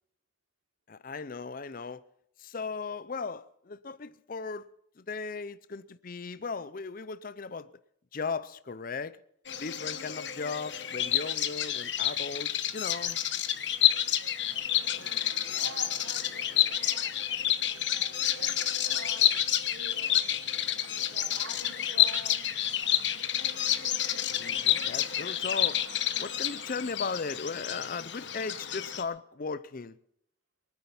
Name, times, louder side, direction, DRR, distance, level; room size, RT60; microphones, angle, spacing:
voice 1, 0.9-2.0 2.4-4.7 5.0-7.7 8.1-9.2 9.6-13.2 24.3-25.8 26.2-30.0, left 4 dB, 45° left, 0.5 m, -37 dB
Bird vocalization bird call bird song, 9.5-29.0, left 11 dB, 60° left, 1.1 m, -29 dB
voice 2, 15.4-20.4 20.9-22.4, right 2 dB, 85° right, 3.2 m, -48 dB
24.0 x 9.7 x 5.8 m
head